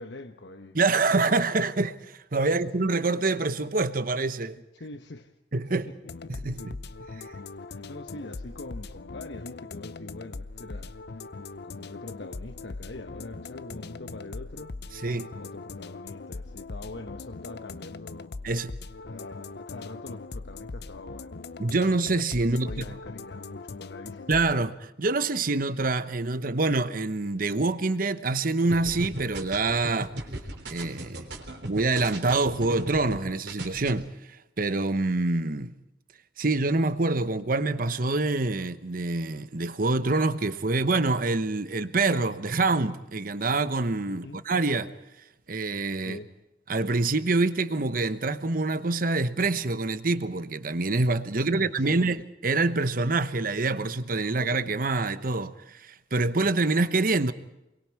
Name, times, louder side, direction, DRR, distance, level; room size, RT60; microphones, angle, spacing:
voice 1, 0.0-0.8 1.1-1.2 2.3-2.6 4.7-5.3 5.7-6.7 7.7-11.3 11.6-14.8 15.4-18.3 19.0-21.3 22.5-24.3 44.1-44.4 46.0-46.3 51.3-52.1, left 2 dB, 80° left, 1.1 m, -43 dB
voice 2, 0.7-2.0 2.3-4.6 5.5-5.9 6.3-6.7 15.0-15.3 18.4-18.7 21.6-22.9 24.3-30.1 30.7-31.2 31.6-34.1 34.6-35.7 36.4-44.9 45.5-46.2 46.7-57.3, right 3 dB, 50° right, 1.0 m, -26 dB
sound 1, 6.0-24.5, left 3 dB, 65° left, 0.7 m, -41 dB
sound 2, 28.7-33.2 33.5-33.9, right 1 dB, 70° right, 3.7 m, -36 dB
28.5 x 22.5 x 4.7 m
head